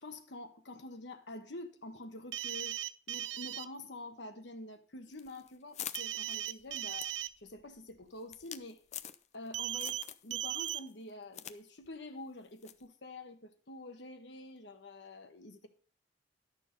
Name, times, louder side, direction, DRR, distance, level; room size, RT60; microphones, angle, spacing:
voice 1, 0.0-2.8 3.1-7.1 7.4-8.8 9.3-15.7, left 2 dB, 65° left, 1.3 m, -47 dB
sound 1, 2.3-3.7 5.9-7.3 9.5-10.0 10.3-10.8, right 12 dB, 65° right, 0.5 m, -37 dB
sound 2, 5.1-9.5 9.8-10.3 10.6-11.6 11.8-11.9 12.6-12.9, left 11 dB, 40° left, 0.5 m, -46 dB
12.0 x 6.7 x 5.2 m
head